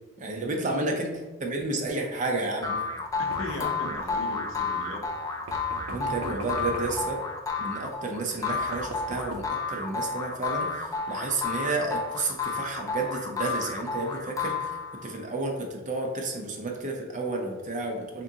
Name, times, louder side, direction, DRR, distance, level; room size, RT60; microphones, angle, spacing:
voice 1, 0.2-2.8 3.5-3.6 5.9-7.2 7.6-14.7 15.0-18.2, right 2 dB, 40° right, 2 dB, 0.6 m, -31 dB
sound 1, 2.6-15.2, left 4 dB, 15° left, 0.4 m, -31 dB
voice 2, 3.2-5.1, left 2 dB, 75° left, 2 dB, 0.6 m, -38 dB
sound 2, 3.3-3.8 5.5-7.2 8.0-8.1 8.5-9.5, right 2 dB, 85° right, 0.5 m, -40 dB
3.7 x 3.7 x 2.8 m, 1.2 s
head